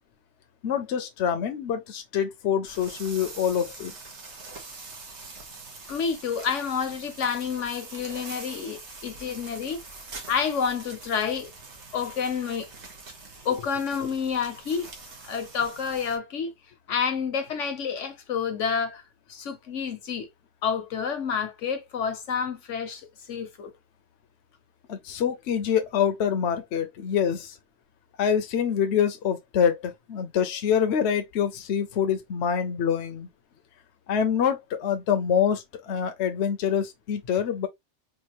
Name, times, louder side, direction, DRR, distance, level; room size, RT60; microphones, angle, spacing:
voice 1, 0.6-3.9 24.9-27.6 28.2-33.3 34.1-37.7, left 8 dB, 70° left, 0.9 m, -25 dB
sound 1, 2.7-16.2, right 3 dB, 65° right, 1.6 m, -44 dB
voice 2, 5.9-9.8 10.3-11.5 11.9-12.7 13.4-14.9 15.2-16.5 16.9-19.0 19.3-20.3 20.6-23.7, left 6 dB, 85° left, 1.3 m, -29 dB
4.5 x 2.5 x 2.9 m
omnidirectional pair, 1.2 m